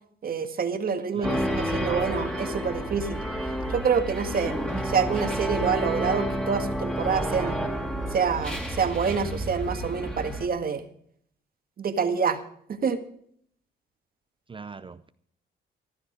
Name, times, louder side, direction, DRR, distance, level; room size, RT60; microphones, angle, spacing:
voice 1, 0.2-3.2 3.7-7.6 8.1-10.9 11.8-12.4 12.7-13.0, right 6 dB, 50° right, 1.8 m, -27 dB
voice 2, 1.1-1.5 14.5-15.1, right 4 dB, 25° right, 0.6 m, -40 dB
sound 1, 1.2-10.5, equal, 5° left, 2.6 m, -30 dB
15.0 x 12.0 x 5.1 m
cardioid pair, 90°, 20 cm